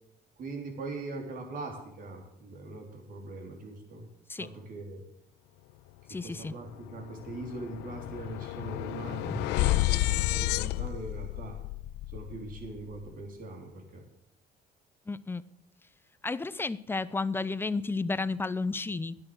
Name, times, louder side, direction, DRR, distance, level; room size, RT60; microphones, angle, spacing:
voice 1, 0.4-4.1 4.4-5.0 6.1-11.6 12.1-14.0, right 2 dB, 55° right, 3 dB, 3.6 m, -41 dB
voice 2, 6.1-6.5 9.3-9.4 15.1-15.5 16.2-19.2, left 3 dB, 15° left, 17 dB, 0.6 m, -32 dB
sound 1, 6.4-6.5 6.8-13.1, left 17 dB, 85° left, 0.5 m, -31 dB
11.0 x 8.7 x 7.8 m, 0.82 s
cardioid pair, 110°, 17 cm